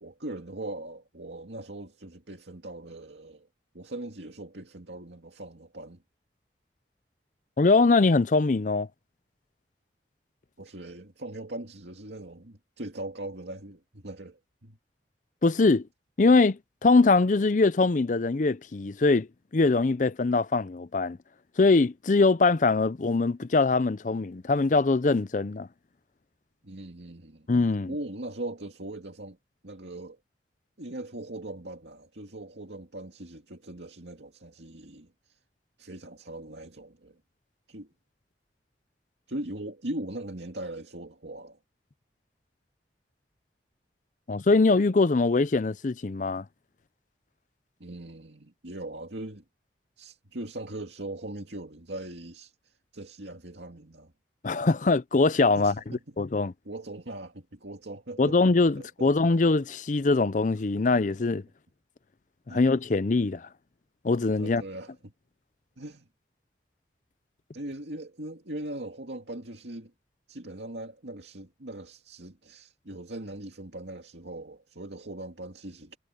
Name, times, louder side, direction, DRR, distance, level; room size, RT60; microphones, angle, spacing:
voice 1, 0.0-3.5 3.7-6.0 10.6-14.8 26.6-27.5 27.9-29.4 29.6-30.2 30.8-35.4 35.8-37.2 37.7-37.9 39.3-41.6 47.8-49.4 50.0-54.1 55.5-56.2 56.6-58.4 58.8-59.1 62.5-62.6 64.4-65.1 65.8-66.1 67.5-69.9 70.3-76.0, right 1 dB, 80° right, 2.3 m, -40 dB
voice 2, 7.6-8.9 15.4-15.9 16.2-19.3 19.5-21.2 21.6-25.7 27.5-27.9 44.3-46.4 54.4-55.7 56.2-56.5 58.2-61.4 62.5-63.5 64.0-64.6, left 3 dB, 45° left, 0.5 m, -22 dB
head